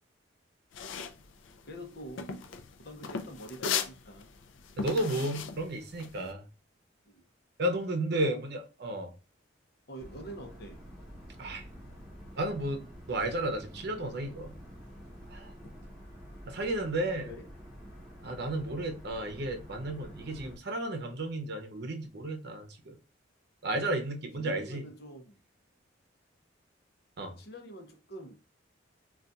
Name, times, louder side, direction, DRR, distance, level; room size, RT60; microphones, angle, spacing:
sound 1, 0.7-6.3, left 6 dB, 80° left, 0.4 m, -37 dB
voice 1, 1.6-2.3 2.8-4.3 7.0-7.2 8.1-8.4 9.9-10.8 17.3-17.4 24.4-25.4 27.4-28.4, equal, 60° left, 0.8 m, -45 dB
voice 2, 4.8-6.5 7.6-9.1 11.4-11.6 12.4-12.8 13.1-14.5 15.3-15.5 16.5-17.3 18.2-22.9 23.6-24.8 27.2-27.4, right 1 dB, 60° right, 0.7 m, -33 dB
sound 2, 10.0-20.6, equal, ahead, 1.3 m, -49 dB
3.9 x 2.4 x 2.3 m
head